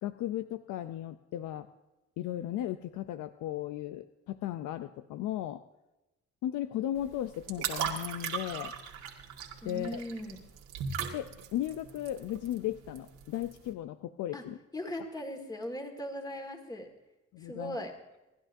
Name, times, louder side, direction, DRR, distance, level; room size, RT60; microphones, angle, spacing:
voice 1, 0.0-1.7 2.2-5.6 6.4-8.7 9.6-10.0 11.1-14.6 17.3-17.8, left 12 dB, 85° left, 10 dB, 0.6 m, -36 dB
sound 1, 7.0-13.7, right 7 dB, 85° right, 2.0 m, -39 dB
voice 2, 9.6-10.4 14.3-14.4 14.7-16.9 17.4-17.9, equal, 15° left, 4 dB, 2.0 m, -39 dB
28.5 x 11.0 x 2.7 m, 1.0 s
cardioid pair, 90°, 30 cm